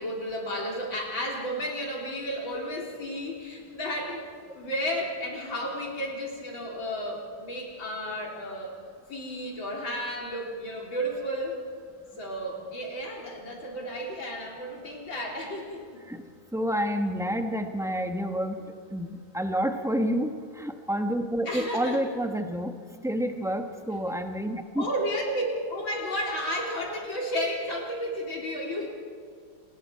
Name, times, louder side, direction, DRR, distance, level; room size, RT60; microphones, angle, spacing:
voice 1, 0.0-4.2 4.5-8.7 9.1-11.6 12.2-16.0 21.5-22.0 24.8-28.9, equal, 70° left, -1 dB, 4.4 m, -32 dB
voice 2, 16.5-18.6 18.9-22.7 23.0-24.9, equal, ahead, 5 dB, 0.8 m, -29 dB
28.5 x 20.0 x 4.8 m, 2.1 s
omnidirectional pair, 2.2 m